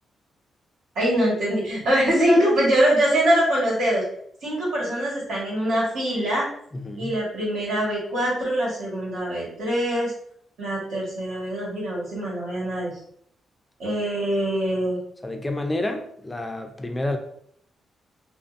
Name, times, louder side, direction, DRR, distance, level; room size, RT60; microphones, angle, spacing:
voice 1, 0.9-4.0 4.4-6.5 7.0-10.1 10.6-12.9 13.8-15.0, right 1 dB, 80° right, -5 dB, 1.4 m, -23 dB
voice 2, 6.7-7.2 15.2-17.2, left 1 dB, 15° left, 5 dB, 0.3 m, -29 dB
2.5 x 2.5 x 2.4 m, 0.66 s
cardioid pair, 100°, 0 cm